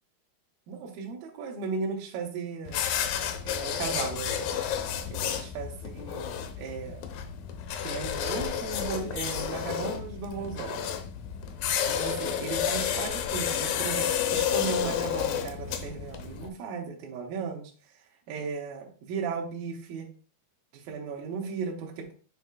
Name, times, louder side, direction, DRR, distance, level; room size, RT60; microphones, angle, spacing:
voice 1, 0.7-2.8 3.4-4.7 5.1-7.0 7.8-10.9 11.9-17.7 18.3-20.1 20.7-22.1, right 5 dB, 75° right, -1 dB, 2.8 m, -36 dB
sound 1, 2.6-16.5, left 9 dB, 75° left, 2.4 m, -31 dB
9.3 x 6.2 x 2.4 m, 0.39 s
omnidirectional pair, 4.5 m